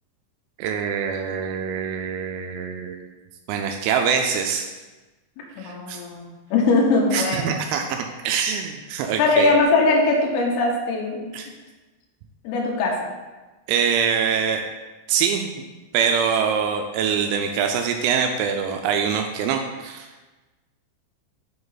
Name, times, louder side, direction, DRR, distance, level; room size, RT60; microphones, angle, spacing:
voice 1, 0.6-3.1 3.5-4.7 5.6-6.0 7.1-9.5 11.3-11.5 13.7-14.6 15.1-15.5 15.9-20.1, right 7 dB, 85° right, 4 dB, 3.2 m, -24 dB
voice 2, 5.6-7.5 9.2-11.3 12.5-13.1, left 3 dB, 80° left, -2 dB, 3.8 m, -21 dB
7.9 x 5.5 x 4.0 m, 1.2 s
omnidirectional pair, 5.9 m